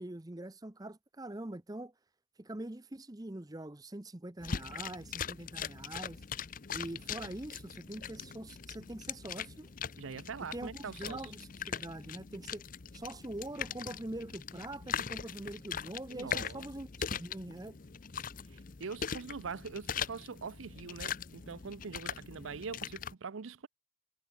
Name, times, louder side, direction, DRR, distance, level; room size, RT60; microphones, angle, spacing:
voice 1, 0.0-1.9 2.4-6.2 6.7-9.7 10.5-12.6 12.9-17.8, right 1 dB, 20° right, 0.7 m, -44 dB
sound 1, 4.4-23.1, left 7 dB, 40° left, 0.6 m, -41 dB
voice 2, 10.0-11.3 16.1-16.7 18.5-23.7, right 5 dB, 80° right, 0.6 m, -43 dB
head